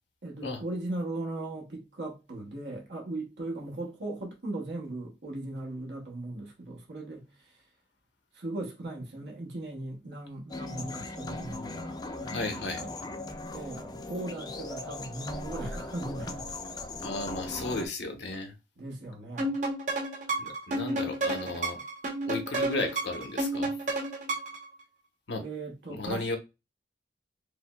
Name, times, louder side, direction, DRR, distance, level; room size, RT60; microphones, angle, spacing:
voice 1, 0.2-7.6 8.3-12.9 13.5-16.6 18.8-19.6 25.4-26.4, right 2 dB, 80° right, 0.9 m, -38 dB
sound 1, 10.5-17.9, left 2 dB, 20° left, 0.4 m, -39 dB
voice 2, 12.2-12.8 17.0-18.5 20.4-21.8 22.2-23.8 25.3-25.4 25.9-26.4, left 2 dB, 90° left, 0.9 m, -34 dB
sound 2, 19.4-24.7, right 2 dB, 45° right, 0.9 m, -31 dB
4.8 x 2.0 x 2.2 m
head